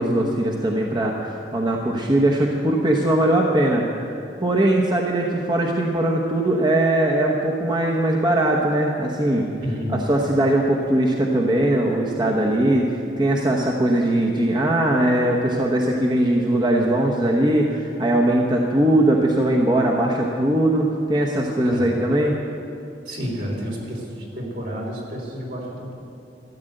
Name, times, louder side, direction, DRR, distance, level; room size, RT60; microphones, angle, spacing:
voice 1, 0.0-4.1 4.4-9.5 10.1-22.4, right 1 dB, 25° right, -1 dB, 1.0 m, -20 dB
voice 2, 9.6-10.0 21.6-21.9 23.1-26.0, equal, 65° right, -2 dB, 3.6 m, -30 dB
14.0 x 10.5 x 7.8 m, 2.6 s
head